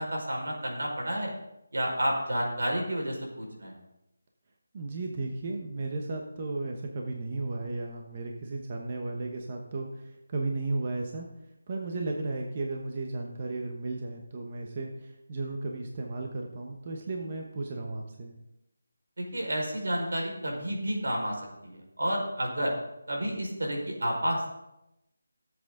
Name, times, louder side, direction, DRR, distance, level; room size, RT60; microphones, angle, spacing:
voice 1, 0.0-1.3 1.7-3.7 19.2-22.7 23.1-24.5, equal, 85° right, 0 dB, 4.9 m, -30 dB
voice 2, 4.7-11.3 11.7-18.3, right 2 dB, 30° right, 1 dB, 1.1 m, -34 dB
16.5 x 7.8 x 3.8 m, 0.88 s
figure-of-eight pair, 175°, 0 cm